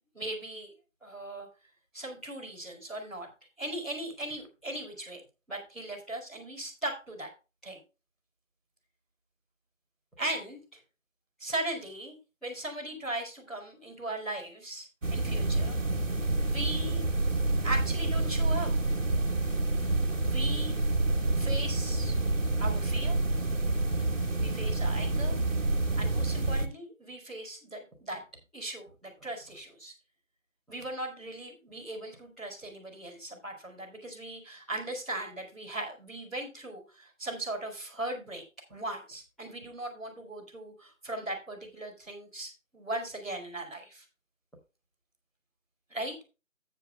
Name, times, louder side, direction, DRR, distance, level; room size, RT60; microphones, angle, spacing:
voice 1, 0.1-0.7 1.0-1.5 1.9-3.3 3.6-5.2 5.5-7.3 7.6-7.8 10.2-10.8 11.4-12.1 12.4-15.8 16.4-17.1 17.6-18.7 20.2-20.8 21.3-22.2 22.6-23.2 23.7-23.9 24.4-25.4 26.0-28.2 28.5-29.9 30.7-38.4 38.7-44.0 45.9-46.1, right 1 dB, ahead, -15 dB, 2.4 m, -38 dB
sound 1, 15.0-26.7, right 2 dB, 65° right, 1.8 m, -28 dB
14.5 x 9.3 x 2.2 m, 0.29 s
figure-of-eight pair, 170°, 40 cm